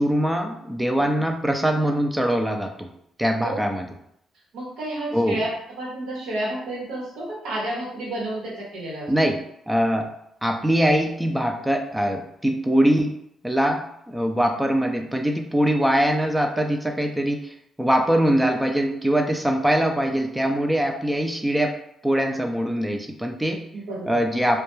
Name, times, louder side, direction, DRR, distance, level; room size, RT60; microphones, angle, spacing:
voice 1, 0.0-2.9 3.2-3.9 5.1-5.4 9.1-9.4 9.7-10.1 10.4-13.2 13.4-23.7 24.1-24.6, equal, 10° right, 4 dB, 0.3 m, -22 dB
voice 2, 4.5-9.1 23.7-24.2, right 1 dB, 85° right, -5 dB, 1.0 m, -31 dB
2.2 x 2.2 x 3.0 m, 0.73 s
cardioid pair, 90°, 0 cm